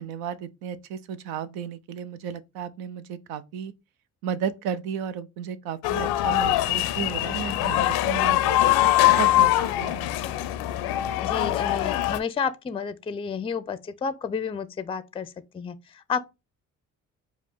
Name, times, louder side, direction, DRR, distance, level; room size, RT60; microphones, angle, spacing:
voice 1, 0.0-3.7 4.2-10.1, right 8 dB, 80° right, 0.5 m, -34 dB
sound 1, 5.8-12.2, left 14 dB, 75° left, 0.5 m, -23 dB
voice 2, 11.2-15.7 16.1-16.3, left 6 dB, 15° left, 0.4 m, -31 dB
4.7 x 2.3 x 3.4 m
hypercardioid pair, 50°, 37 cm